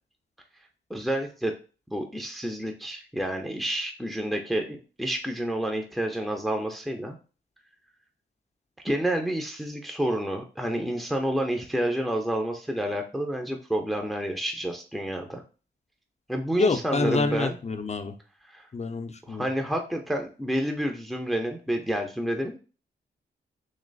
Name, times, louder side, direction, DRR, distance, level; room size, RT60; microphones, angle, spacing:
voice 1, 0.9-1.5 1.9-7.2 8.8-15.4 16.3-17.6 18.4-18.7 19.3-22.6, right 1 dB, ahead, 3 dB, 0.7 m, -29 dB
voice 2, 16.5-18.1 18.7-19.5, left 3 dB, 35° left, 7 dB, 0.7 m, -27 dB
3.2 x 3.0 x 4.0 m, 0.35 s
cardioid pair, 60°, 19 cm